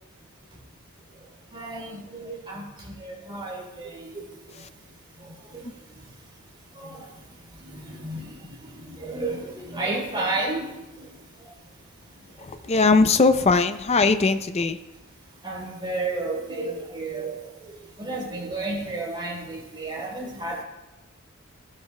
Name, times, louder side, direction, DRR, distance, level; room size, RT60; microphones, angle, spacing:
voice 1, 1.1-12.7 15.4-20.6, right 2 dB, 25° right, -3 dB, 3.3 m, -34 dB
voice 2, 12.4-14.8, left 4 dB, 30° left, 10 dB, 0.5 m, -20 dB
15.5 x 12.0 x 2.2 m, 1.0 s
head